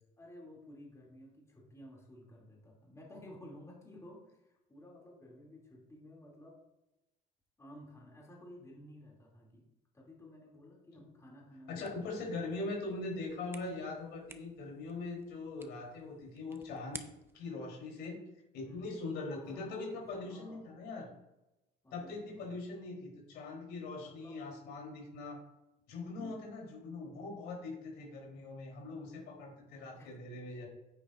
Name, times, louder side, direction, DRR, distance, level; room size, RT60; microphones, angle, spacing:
voice 1, 0.2-6.6 7.6-9.7 9.9-12.2 18.6-18.9 19.3-20.6 21.8-22.5 24.0-24.4 26.2-26.4 29.9-30.1, left 1 dB, 15° left, -3 dB, 2.6 m, -53 dB
voice 2, 11.7-17.0 17.3-18.2 18.5-21.1 21.9-25.4 25.9-30.7, left 3 dB, 85° left, -1 dB, 3.5 m, -41 dB
sound 1, 11.8-17.5, right 2 dB, 15° right, 0.8 m, -54 dB
9.5 x 9.3 x 2.5 m, 0.95 s
cardioid pair, 110°, 17 cm